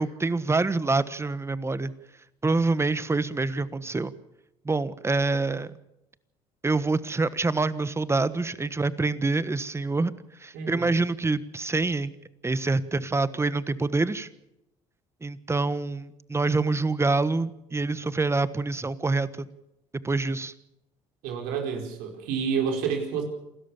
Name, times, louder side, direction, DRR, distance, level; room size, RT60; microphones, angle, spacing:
voice 1, 0.0-1.9 2.4-4.1 4.6-5.7 6.6-10.1 10.4-12.1 12.4-14.3 15.2-19.5 20.0-20.5, right 3 dB, 15° right, 15 dB, 1.3 m, -26 dB
voice 2, 10.5-11.0 21.2-23.2, right 6 dB, 75° right, 3 dB, 4.9 m, -29 dB
28.0 x 13.0 x 7.3 m, 0.87 s
hypercardioid pair, 70°, 15 cm